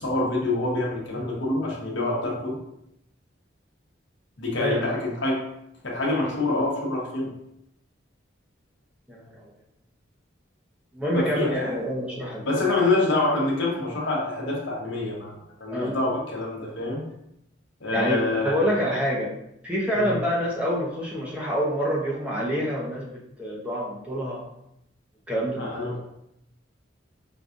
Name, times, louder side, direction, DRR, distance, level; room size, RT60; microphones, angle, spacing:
voice 1, 0.0-2.6 4.4-5.4 5.8-7.3 11.1-11.7 12.5-17.0 17.8-18.6 19.9-20.2 25.6-26.0, left 2 dB, 75° left, -3 dB, 1.0 m, -26 dB
voice 2, 9.1-9.5 10.9-12.5 15.7-16.0 17.9-18.2 18.4-19.3 19.6-24.4 25.3-25.6, equal, 5° right, -5 dB, 0.7 m, -27 dB
5.2 x 2.4 x 2.5 m, 0.80 s
head